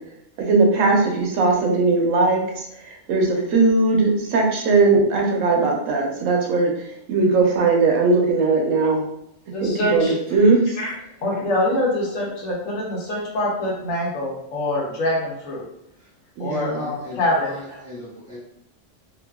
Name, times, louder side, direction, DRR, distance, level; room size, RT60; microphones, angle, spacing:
voice 1, 0.4-2.4 3.1-6.7 7.1-9.0 9.6-10.6 16.4-16.9, right 3 dB, 85° right, 0 dB, 1.0 m, -19 dB
voice 2, 9.5-10.1 10.8-10.9 11.2-15.6 16.4-17.5, left 1 dB, 85° left, -3 dB, 1.2 m, -24 dB
voice 3, 16.6-18.4, left 1 dB, 15° left, -9 dB, 1.3 m, -38 dB
2.7 x 2.4 x 2.2 m, 0.76 s
omnidirectional pair, 1.3 m